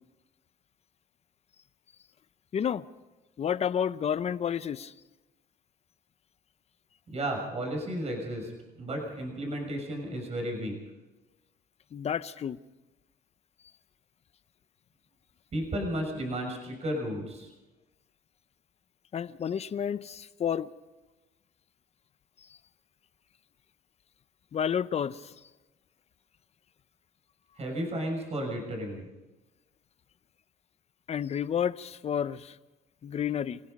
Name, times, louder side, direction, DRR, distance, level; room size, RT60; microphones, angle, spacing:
voice 1, 2.5-2.9 3.4-4.9 11.9-12.6 19.1-20.7 24.5-25.3 31.1-32.6 33.0-33.6, left 8 dB, 40° left, 15 dB, 0.8 m, -30 dB
voice 2, 7.1-8.5 8.8-10.7 15.5-17.5 27.6-29.1, right 1 dB, 40° right, 2 dB, 6.3 m, -33 dB
28.5 x 17.0 x 5.4 m, 1.1 s
cardioid pair, 110°, 17 cm